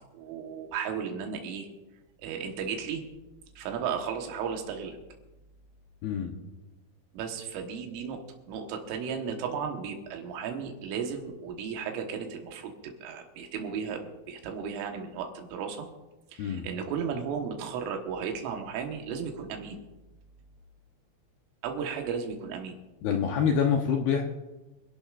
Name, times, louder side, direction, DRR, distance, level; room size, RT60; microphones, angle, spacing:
voice 1, 0.1-1.7 2.2-3.0 3.6-5.0 7.1-15.9 16.3-19.8 21.6-22.8, right 6 dB, 85° right, 3 dB, 3.9 m, -35 dB
voice 2, 6.0-6.4 16.4-16.7 23.0-24.2, left 7 dB, 75° left, 2 dB, 2.3 m, -26 dB
27.5 x 12.0 x 2.5 m, 1.1 s
omnidirectional pair, 5.6 m